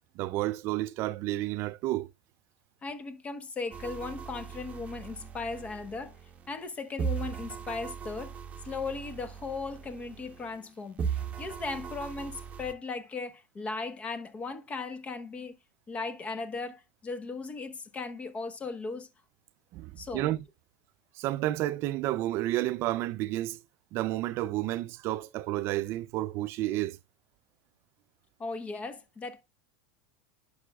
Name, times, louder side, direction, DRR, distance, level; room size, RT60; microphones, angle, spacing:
voice 1, 0.2-2.1 19.7-20.4 21.1-23.6 23.9-27.0, right 15 dB, 50° right, 0.4 m, -31 dB
voice 2, 2.8-6.1 6.5-8.3 8.6-15.6 15.9-19.1 20.0-20.3 28.4-29.4, left 4 dB, 25° left, 1.0 m, -37 dB
sound 1, 3.7-6.7 7.0-10.7 11.0-12.7, right 7 dB, 25° right, 1.0 m, -38 dB
11.0 x 5.6 x 2.3 m
supercardioid pair, 125°, 6 cm